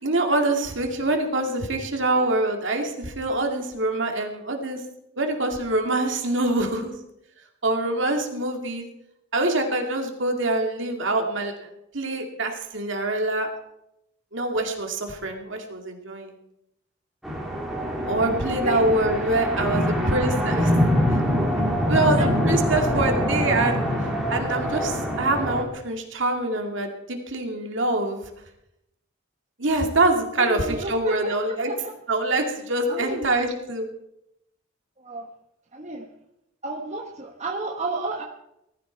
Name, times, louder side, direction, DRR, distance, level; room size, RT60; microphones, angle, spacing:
voice 1, 0.0-4.8 5.2-6.9 7.6-8.9 9.3-11.5 11.9-13.5 14.3-16.3 18.1-20.7 21.9-23.8 24.3-28.3 29.6-31.7 32.1-33.9, right 2 dB, 60° right, 3 dB, 2.4 m, -25 dB
sound 1, 17.2-25.6, equal, ahead, 2.8 m, -24 dB
voice 2, 19.5-20.1 21.6-21.7 21.9-22.3 30.3-31.9 32.9-33.3 35.0-35.3 35.7-36.0 36.6-38.2, right 2 dB, 30° right, 0 dB, 1.4 m, -32 dB
19.5 x 13.5 x 4.6 m, 0.83 s
head